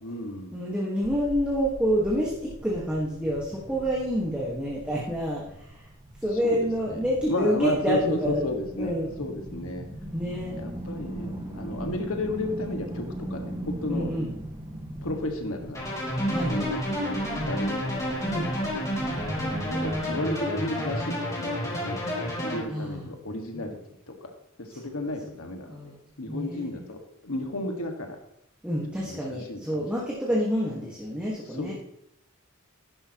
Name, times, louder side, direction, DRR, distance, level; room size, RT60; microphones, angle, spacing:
voice 1, 0.0-0.6 6.4-6.6 6.9-7.0 7.3-9.9 10.5-14.1 15.0-15.8 16.4-18.0 19.7-23.8 24.2-27.0 27.2-28.2 29.0-29.2 29.5-29.8 31.6-31.7, left 2 dB, 75° left, 4 dB, 1.7 m, -33 dB
voice 2, 0.5-5.9 6.2-9.1 10.1-10.5 13.9-14.3 16.3-16.8 18.2-18.5 19.7-20.2 22.7-23.1 23.5-23.6 25.7-26.0 26.3-26.9 28.6-31.7, equal, 5° right, -5 dB, 1.5 m, -28 dB
sound 1, 1.0-20.3, right 1 dB, 20° right, 1.5 m, -40 dB
sound 2, 15.7-22.6, equal, 15° left, 2.6 m, -30 dB
11.0 x 11.0 x 3.0 m, 0.79 s
head